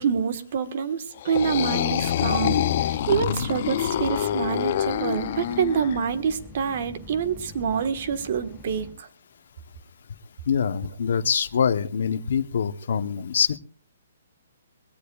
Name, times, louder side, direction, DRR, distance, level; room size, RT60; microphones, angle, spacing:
voice 1, 0.0-9.1, right 7 dB, 45° right, 10 dB, 1.4 m, -26 dB
sound 1, 1.2-6.0, left 11 dB, 40° left, 0.6 m, -26 dB
sound 2, 2.2-8.9, left 1 dB, ahead, 5.3 m, -44 dB
voice 2, 3.1-3.5 10.5-13.6, left 7 dB, 60° left, 12 dB, 0.9 m, -25 dB
22.0 x 17.0 x 2.4 m, 0.40 s
hypercardioid pair, 165°, 0 cm